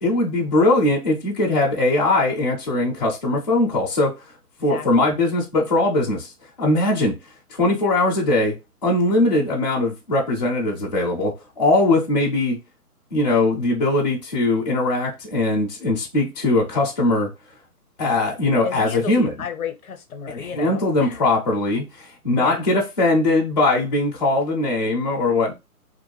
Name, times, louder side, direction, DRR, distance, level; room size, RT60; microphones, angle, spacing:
voice 1, 0.0-4.2 4.6-6.3 6.6-7.2 7.5-8.6 8.8-12.6 13.1-17.3 18.0-19.3 20.3-25.5, left 2 dB, 30° left, 0.5 m, -20 dB
voice 2, 4.6-5.2 18.6-21.2 22.3-22.6, left 6 dB, 65° left, 0.7 m, -33 dB
2.5 x 2.1 x 3.1 m
hypercardioid pair, 150°, 46 cm